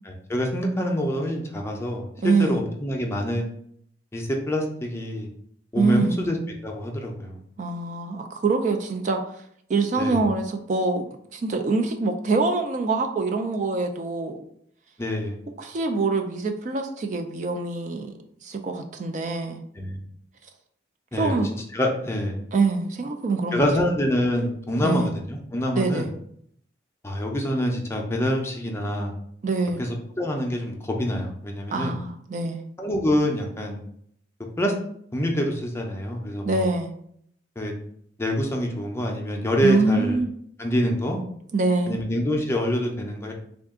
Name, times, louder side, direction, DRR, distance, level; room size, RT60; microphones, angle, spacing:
voice 1, 0.3-3.5 4.1-5.3 5.7-6.4 6.6-7.4 10.0-10.2 15.0-15.5 19.8-20.0 21.1-21.4 21.7-22.4 23.5-26.1 27.0-29.1 30.2-31.9 32.8-33.8 34.6-34.7 35.1-36.6 37.6-37.7 38.2-40.2 40.6-41.2 41.9-43.3, equal, 15° left, 0 dB, 0.5 m, -26 dB
voice 2, 2.2-2.6 5.8-6.2 7.6-9.2 9.7-14.4 15.6-19.6 21.1-21.5 22.5-23.7 24.8-25.1 25.7-26.1 29.4-29.8 31.7-32.6 36.4-36.9 39.6-40.3 41.5-42.0, right 3 dB, 45° right, 5 dB, 0.4 m, -24 dB
3.6 x 2.4 x 3.5 m, 0.66 s
head